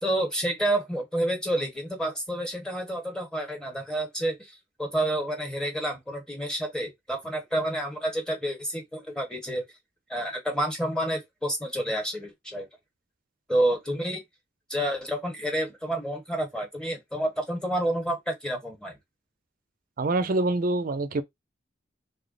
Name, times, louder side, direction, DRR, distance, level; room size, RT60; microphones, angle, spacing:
voice 1, 0.0-9.6 10.1-12.7 13.5-14.2 14.7-19.0, right 1 dB, 5° left, 1.1 m, -29 dB
voice 2, 20.0-21.2, right 2 dB, 50° right, 0.5 m, -25 dB
3.5 x 2.1 x 3.8 m
head